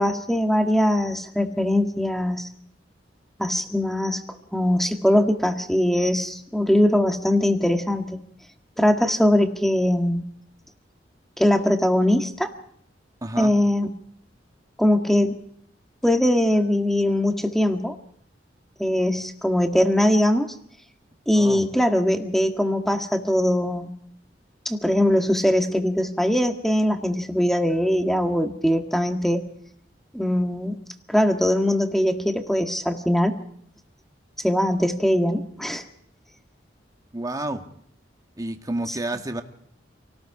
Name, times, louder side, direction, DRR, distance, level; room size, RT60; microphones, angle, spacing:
voice 1, 0.0-2.5 3.4-4.2 4.5-8.2 8.8-10.2 11.4-12.5 13.4-13.9 14.8-15.3 16.0-18.0 18.8-20.5 21.3-23.9 24.7-29.4 30.1-30.8 31.1-33.4 34.4-35.8 38.9-39.0, left 1 dB, ahead, 5 dB, 1.8 m, -21 dB
voice 2, 13.2-13.5 21.3-21.6 37.1-37.6 38.4-39.4, right 1 dB, 20° right, 5 dB, 1.7 m, -29 dB
28.5 x 18.5 x 4.9 m, 0.67 s
head